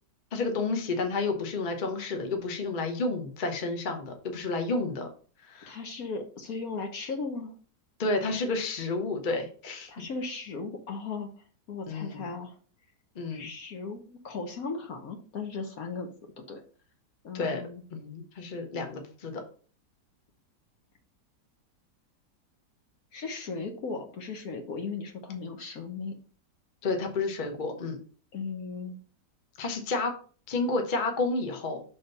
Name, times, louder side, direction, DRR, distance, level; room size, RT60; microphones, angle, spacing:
voice 1, 0.3-5.1 5.4-5.7 8.0-9.9 11.9-12.3 13.1-13.5 17.3-17.6 17.9-19.4 26.8-28.0 29.6-30.1 30.5-31.8, left 3 dB, 35° left, 5 dB, 0.9 m, -30 dB
voice 2, 5.7-7.5 9.9-11.3 11.7-12.6 13.3-16.1 16.4-16.6 17.2-17.8 23.1-26.2 28.3-28.9, left 4 dB, 60° left, 5 dB, 1.2 m, -37 dB
6.1 x 3.6 x 5.3 m, 0.41 s
omnidirectional pair, 1.9 m